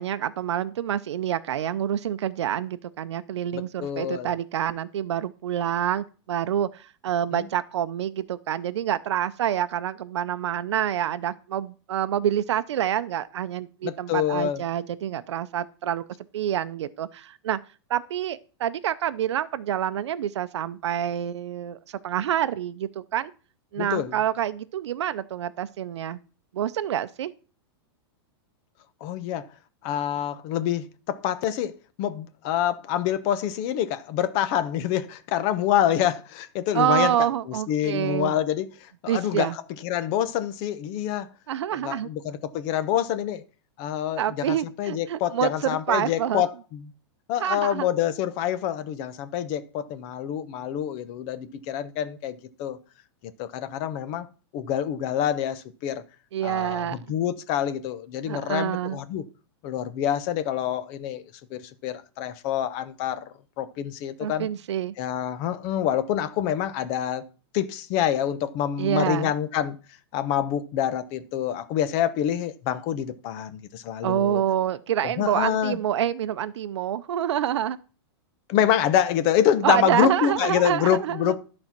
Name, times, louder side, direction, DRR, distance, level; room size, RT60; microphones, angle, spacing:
voice 1, 0.0-16.0 16.3-17.6 17.9-23.3 23.7-26.2 26.5-27.3 36.7-38.4 39.1-39.6 41.5-42.1 44.2-46.4 47.4-47.9 56.3-57.0 58.3-59.0 64.2-64.9 68.8-69.3 74.0-77.8 79.6-81.4, right 10 dB, 90° right, 0.6 m, -27 dB
voice 2, 3.5-4.3 7.3-7.5 13.8-14.6 23.8-24.2 29.0-29.5 29.8-37.2 37.5-41.3 41.8-43.4 43.8-46.9 47.3-52.8 53.2-54.3 54.5-56.0 56.4-59.2 59.6-61.2 61.5-63.2 63.6-64.5 65.0-67.2 67.5-69.8 70.1-74.4 75.2-75.8 78.5-81.4, left 10 dB, 35° left, 0.8 m, -26 dB
11.5 x 4.3 x 5.9 m
supercardioid pair, 155°, 14 cm